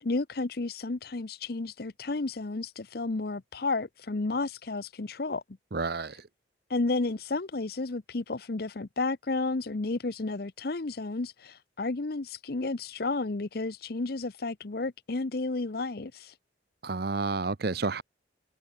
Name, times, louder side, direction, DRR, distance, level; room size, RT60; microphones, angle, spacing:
voice 1, 0.0-5.4 6.1-6.2 6.7-16.4, left 3 dB, 55° left, 0.8 m, -32 dB
voice 2, 5.7-6.2 16.8-18.0, right 3 dB, 55° right, 0.8 m, -30 dB
head